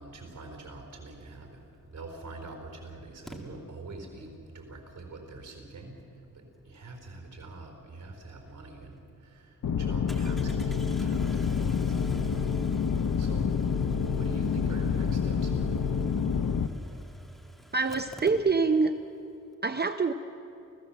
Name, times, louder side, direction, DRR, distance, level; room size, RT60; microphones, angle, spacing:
voice 1, 0.0-17.1, right 2 dB, 85° right, 3 dB, 4.6 m, -45 dB
Engine starting, 1.8-1.9 3.3-3.4 8.5-8.6 8.9-9.0 10.1-18.9 19.2-19.3 19.5-19.6, equal, ahead, 2.0 m, -51 dB
sound 1, 9.6-16.7, left 6 dB, 80° left, 0.9 m, -28 dB
voice 2, 17.7-18.9 19.6-20.1, right 4 dB, 30° right, 8 dB, 0.7 m, -25 dB
29.5 x 16.0 x 7.5 m, 2.7 s
wide cardioid pair, 150°, 31 cm